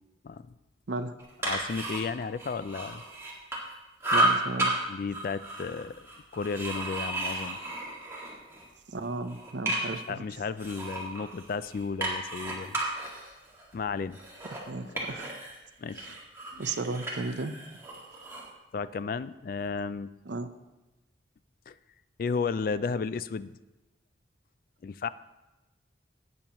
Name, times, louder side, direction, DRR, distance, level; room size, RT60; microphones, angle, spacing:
voice 1, 0.2-0.5 1.4-3.0 4.9-6.0 6.3-7.6 9.9-12.8 13.7-14.2 15.8-16.1 16.5-16.6 18.7-20.1 21.7-21.8 22.2-23.6 24.8-25.1, left 5 dB, 50° left, 15 dB, 0.3 m, -33 dB
sound 1, 1.2-3.7 4.0-4.7 5.1-8.7 9.0-10.1 10.6-15.6 15.9-18.5, right 1 dB, 15° right, 1.9 m, -33 dB
voice 2, 4.1-4.7 8.9-10.2 14.5-15.4 16.0-16.2 16.6-17.6 20.3-20.5, right 3 dB, 75° right, 9 dB, 0.6 m, -34 dB
18.0 x 7.1 x 3.0 m, 1.1 s
head